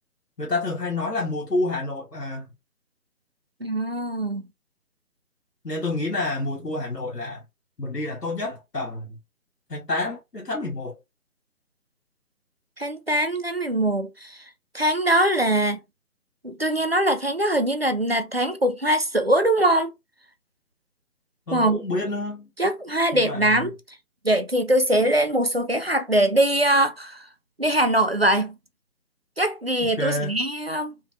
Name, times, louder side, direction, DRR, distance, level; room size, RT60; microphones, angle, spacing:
voice 1, 0.4-2.5 5.6-7.4 7.8-9.2 9.7-10.9 21.5-22.5 23.1-23.6 29.8-30.4, left 2 dB, 90° left, 1.5 m, -28 dB
voice 2, 3.6-4.4 12.8-14.3 14.7-15.8 16.4-19.9 21.5-21.8 22.6-23.7 24.2-27.2 27.6-28.5 29.4-30.9, right 1 dB, 45° right, 0.4 m, -22 dB
3.5 x 3.0 x 2.5 m
figure-of-eight pair, 155°, 47 cm